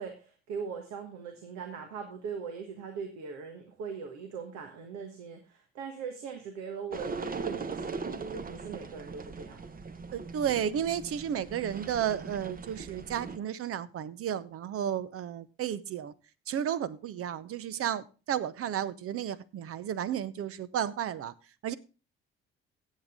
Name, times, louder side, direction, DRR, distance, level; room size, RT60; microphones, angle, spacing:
voice 1, 0.0-9.7, right 6 dB, 65° right, 1.5 m, -40 dB
sound 1, 6.9-13.4, right 4 dB, 30° right, 1.0 m, -39 dB
voice 2, 10.1-16.1 16.5-21.3 21.6-21.7, right 9 dB, 50° right, 0.8 m, -33 dB
16.0 x 7.4 x 3.6 m
hypercardioid pair, 50°, 30 cm